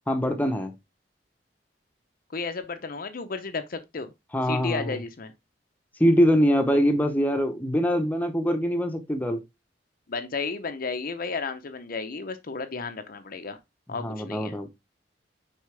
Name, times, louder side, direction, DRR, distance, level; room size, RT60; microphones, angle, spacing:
voice 1, 0.1-0.8 4.3-5.0 6.0-9.4 14.0-14.7, equal, 10° left, 0.9 m, -23 dB
voice 2, 2.3-4.1 4.5-5.3 10.1-13.6 13.9-14.6, left 4 dB, 55° left, 0.7 m, -33 dB
6.4 x 4.6 x 3.4 m
head